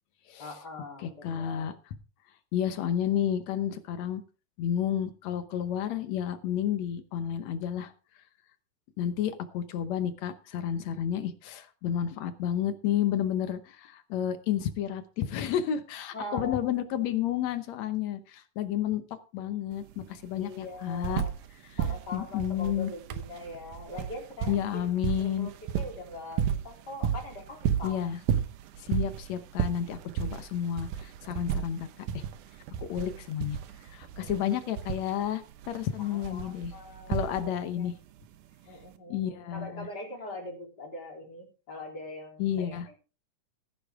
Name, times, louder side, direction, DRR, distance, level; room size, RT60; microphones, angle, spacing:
voice 1, 0.4-1.8 16.1-16.7 20.4-21.4 21.8-24.8 25.2-28.0 31.5-31.7 32.9-33.2 34.2-34.4 36.0-37.9 38.7-43.0, left 2 dB, 30° left, 1 dB, 4.0 m, -42 dB
voice 2, 1.0-1.7 2.5-4.2 4.6-7.9 9.0-19.0 19.3-21.2 21.7-21.8 22.1-22.9 24.5-25.5 27.8-28.2 28.8-32.2 32.8-33.6 33.9-36.7 37.1-38.0 39.1-39.9 42.4-42.9, left 10 dB, 65° left, 11 dB, 2.0 m, -31 dB
sound 1, 19.7-19.8 20.1-21.5 21.8-37.7 38.8-38.9, right 9 dB, 75° right, 2.4 m, -33 dB
15.0 x 10.0 x 3.6 m, 0.33 s
omnidirectional pair, 3.8 m